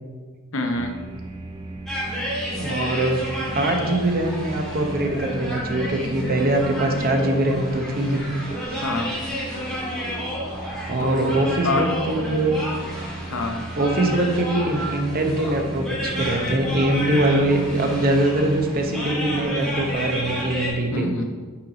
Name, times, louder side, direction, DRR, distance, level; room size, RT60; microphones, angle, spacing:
voice 1, 0.5-0.9 8.8-9.2 11.0-11.9 13.3-13.6 20.9-21.2, left 2 dB, 60° left, 4 dB, 0.8 m, -26 dB
sound 1, 0.7-20.7, right 2 dB, 20° right, 0.4 m, -35 dB
sound 2, 1.9-20.7, equal, ahead, 1.9 m, -31 dB
voice 2, 2.6-3.2 3.5-8.2 8.6-8.8 10.9-12.6 13.8-21.2, right 1 dB, 40° right, 3 dB, 0.8 m, -23 dB
5.7 x 4.6 x 5.1 m, 1.5 s
head